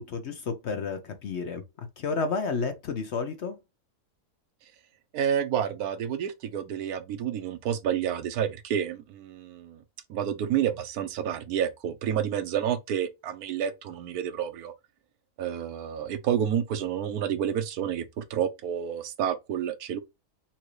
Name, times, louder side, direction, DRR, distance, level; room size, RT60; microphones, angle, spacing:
voice 1, 0.0-1.6 2.0-3.6, left 4 dB, 55° left, 0.8 m, -31 dB
voice 2, 5.1-9.8 10.1-14.7 15.4-20.0, right 9 dB, 80° right, 1.2 m, -29 dB
5.7 x 2.6 x 3.2 m
omnidirectional pair, 1.6 m